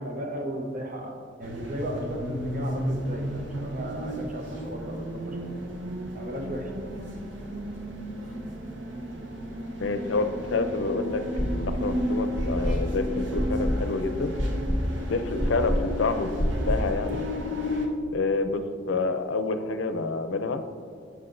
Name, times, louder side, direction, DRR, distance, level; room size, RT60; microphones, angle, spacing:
voice 1, 0.0-5.7 6.1-6.7, equal, 45° right, 2 dB, 0.9 m, -35 dB
sound 1, 1.4-17.9, equal, 75° right, 0.8 m, -33 dB
voice 2, 9.8-14.4 15.1-16.3 16.7-17.2 18.1-20.6, left 3 dB, 80° left, 9 dB, 0.5 m, -28 dB
sound 2, 11.4-11.9 12.4-17.0, equal, 20° left, 1.4 m, -27 dB
7.9 x 7.8 x 2.6 m, 2.1 s
head